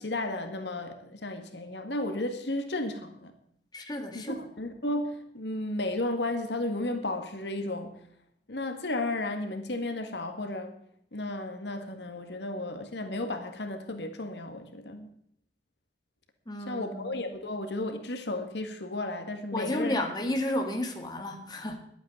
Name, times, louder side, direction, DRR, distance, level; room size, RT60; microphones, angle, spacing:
voice 1, 0.0-3.3 4.1-7.9 8.5-10.8 11.1-15.1 16.7-20.0, left 2 dB, 75° left, 7 dB, 1.8 m, -33 dB
voice 2, 3.7-4.4 16.5-17.1 19.5-21.8, left 1 dB, 25° left, 3 dB, 1.8 m, -32 dB
11.5 x 8.9 x 9.4 m, 0.69 s
head